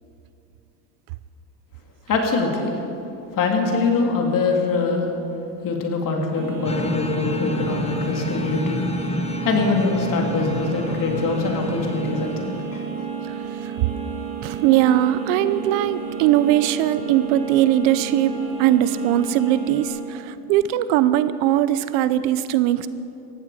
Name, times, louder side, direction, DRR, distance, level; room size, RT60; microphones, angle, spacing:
voice 1, 2.1-2.8 3.3-5.0 5.6-8.8 9.4-13.0, left 4 dB, 45° left, 1 dB, 3.1 m, -23 dB
sound 1, 6.3-19.8, right 6 dB, 45° right, 3.8 m, -31 dB
sound 2, 6.6-12.8, left 3 dB, 15° left, 1.0 m, -30 dB
voice 2, 14.4-22.9, right 12 dB, 75° right, 14 dB, 0.9 m, -20 dB
19.0 x 15.0 x 5.1 m, 2.9 s
supercardioid pair, 110°, 45 cm